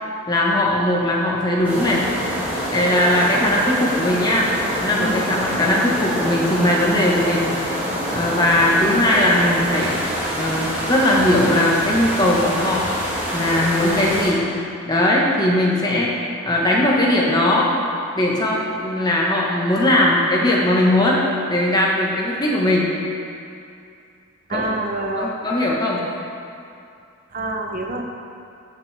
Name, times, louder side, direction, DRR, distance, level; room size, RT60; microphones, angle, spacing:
voice 1, 0.3-2.0 2.7-4.5 4.8-7.4 8.1-10.0 10.3-12.8 13.3-14.4 14.9-16.1 16.4-17.7 18.1-21.2 21.5-22.9 24.5-24.8 25.2-26.0, left 1 dB, 20° left, -3 dB, 1.2 m, -19 dB
sound 1, 1.6-14.3, equal, 10° right, 1.8 m, -26 dB
voice 2, 24.5-25.3 27.3-28.0, right 1 dB, 40° right, 2 dB, 0.8 m, -26 dB
13.0 x 6.1 x 3.4 m, 2.5 s
head